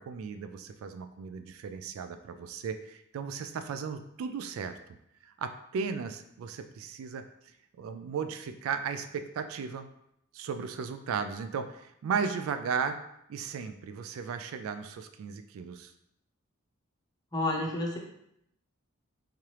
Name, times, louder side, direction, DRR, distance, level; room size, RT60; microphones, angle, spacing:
voice 1, 0.1-4.7 5.2-7.2 7.8-9.9 10.3-13.0 13.3-15.9, right 6 dB, 75° right, 10 dB, 0.3 m, -35 dB
voice 2, 17.3-18.0, left 2 dB, 20° left, -1 dB, 0.6 m, -30 dB
3.6 x 3.2 x 2.9 m, 0.76 s
head